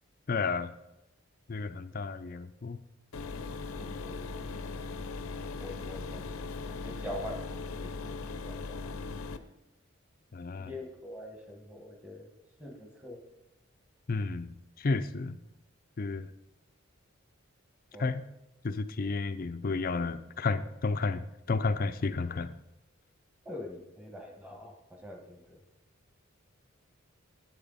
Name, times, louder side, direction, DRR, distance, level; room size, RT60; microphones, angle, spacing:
voice 1, 0.3-0.7 1.5-2.8 10.3-10.7 14.1-15.4 16.0-16.3 18.0-18.2 18.6-22.5, left 3 dB, 45° left, 12 dB, 0.5 m, -32 dB
sound 1, 3.1-9.4, left 3 dB, 85° left, 0.7 m, -39 dB
voice 2, 3.8-4.7 5.6-8.1 8.4-8.9 10.5-12.3 12.6-13.2 17.9-18.1 23.4-25.6, left 1 dB, 5° right, 2 dB, 1.5 m, -44 dB
10.0 x 8.7 x 4.1 m, 0.90 s
head